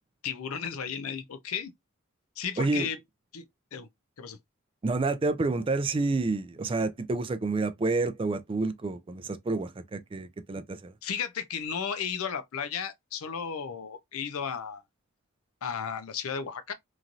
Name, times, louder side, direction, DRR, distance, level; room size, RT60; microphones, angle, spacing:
voice 1, 0.2-1.7 2.4-3.0 3.3-3.5 3.7-3.9 4.2-4.4 5.5-5.6 11.0-14.8 15.6-16.7, left 7 dB, 90° left, 0.5 m, -34 dB
voice 2, 2.6-2.9 4.8-10.9, right 3 dB, 25° right, 0.3 m, -29 dB
3.0 x 2.6 x 2.4 m
head